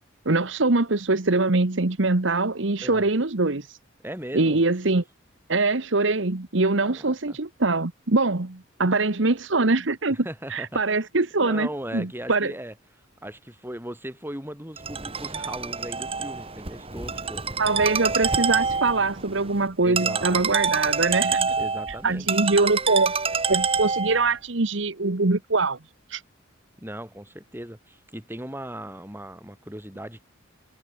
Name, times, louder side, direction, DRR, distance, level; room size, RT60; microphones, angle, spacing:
voice 1, 0.2-3.8 4.3-5.0 5.5-10.2 10.5-12.5 17.6-21.5 22.0-23.1 23.5-25.8 26.1-26.2, right 3 dB, 60° right, 1.3 m, -23 dB
voice 2, 2.8-3.1 4.0-4.6 6.8-7.4 10.1-11.0 11.4-12.7 13.2-17.6 19.8-20.4 21.6-22.3 26.8-30.2, right 1 dB, 10° right, 7.4 m, -38 dB
Ringtone, 14.8-24.3, right 5 dB, 30° right, 3.2 m, -27 dB
head